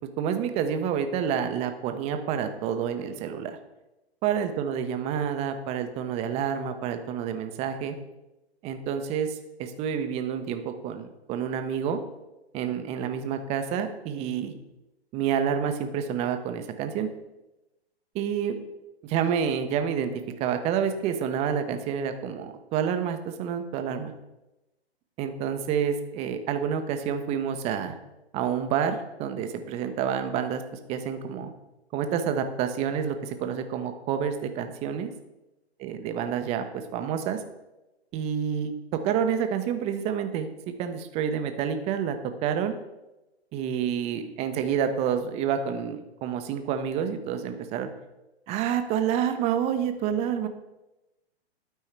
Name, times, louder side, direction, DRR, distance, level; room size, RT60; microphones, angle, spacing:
voice 1, 0.2-3.5 4.2-7.9 8.6-12.0 12.5-14.5 15.1-17.1 18.1-18.6 19.0-20.1 20.4-24.1 25.2-28.0 28.3-30.6 30.9-31.5 31.9-35.1 35.8-37.4 38.1-40.5 40.8-42.2 42.4-42.7 43.5-47.9 48.5-50.5, right 8 dB, 20° right, 8 dB, 0.6 m, -28 dB
12.0 x 4.5 x 3.3 m, 1.0 s
figure-of-eight pair, 120°, 32 cm